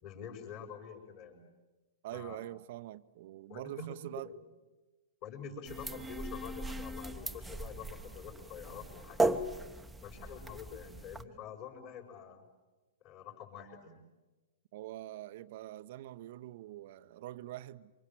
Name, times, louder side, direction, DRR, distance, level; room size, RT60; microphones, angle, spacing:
voice 1, 0.0-1.5 2.1-2.4 3.5-4.0 5.2-9.6 10.0-12.4 13.0-14.0, left 6 dB, 40° left, 5.6 m, -46 dB
voice 2, 2.0-4.3 14.7-17.9, right 14 dB, 50° right, 0.8 m, -44 dB
sound 1, 5.6-11.2, right 2 dB, 5° right, 1.0 m, -37 dB
28.5 x 25.0 x 7.5 m
figure-of-eight pair, 110°, 0 cm